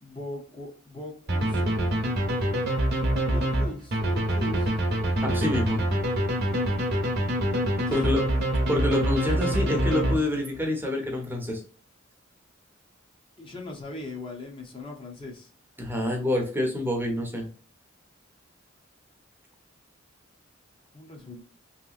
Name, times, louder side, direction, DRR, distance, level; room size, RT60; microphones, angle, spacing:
voice 1, 0.0-1.9 3.3-4.8 7.8-8.1 13.4-15.5 20.9-21.4, left 2 dB, 25° left, 0.7 m, -40 dB
sound 1, 1.3-10.6, right 1 dB, 50° right, 0.9 m, -25 dB
voice 2, 5.2-5.8 7.9-8.2 8.7-11.6 15.8-17.5, left 1 dB, 10° right, 0.7 m, -27 dB
3.2 x 2.9 x 2.4 m
head